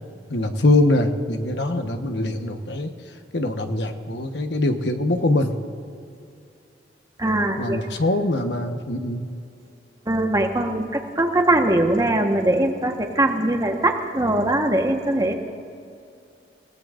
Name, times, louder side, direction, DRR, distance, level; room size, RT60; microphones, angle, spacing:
voice 1, 0.3-2.9 3.3-5.6 7.6-9.3, left 2 dB, 75° left, 6 dB, 1.2 m, -23 dB
voice 2, 7.2-7.8 10.1-15.3, right 1 dB, 20° right, 3 dB, 1.3 m, -21 dB
30.0 x 17.5 x 2.5 m, 2.5 s
head